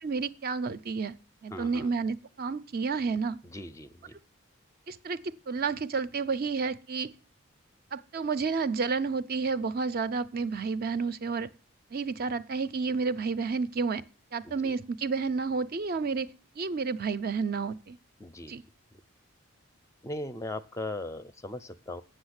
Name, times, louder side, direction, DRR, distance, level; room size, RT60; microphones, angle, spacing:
voice 1, 0.0-1.1 1.4-3.4 4.9-7.1 7.9-11.5 11.9-14.0 14.3-16.3 16.6-18.0 18.5-18.6, right 4 dB, 45° right, 0.5 m, -30 dB
voice 2, 1.5-1.9 3.4-4.2 14.4-14.8 18.2-18.6 20.0-22.0, left 1 dB, 15° left, 0.4 m, -39 dB
8.4 x 6.4 x 8.0 m
head